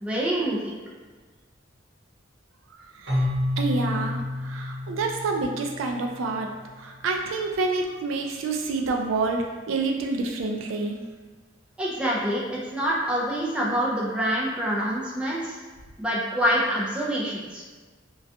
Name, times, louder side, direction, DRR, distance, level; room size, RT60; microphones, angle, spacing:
voice 1, 0.0-0.8 11.8-15.6 16.0-17.6, equal, 5° right, -5 dB, 0.4 m, -26 dB
voice 2, 2.8-3.3 3.6-6.5 6.8-11.0, right 3 dB, 85° right, 2 dB, 0.3 m, -28 dB
Keyboard (musical), 3.1-6.8, left 1 dB, 65° right, 0.9 m, -30 dB
2.3 x 2.2 x 2.6 m, 1.4 s
head